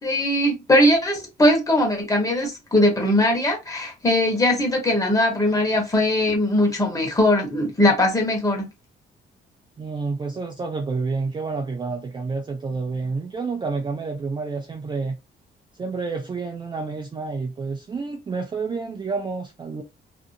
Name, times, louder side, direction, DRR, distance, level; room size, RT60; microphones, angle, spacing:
voice 1, 0.0-8.7, left 1 dB, 15° left, 1.1 m, -20 dB
voice 2, 9.8-15.2 15.8-19.8, right 4 dB, 25° right, 0.4 m, -29 dB
2.6 x 2.4 x 2.6 m
cardioid pair, 130°, 19 cm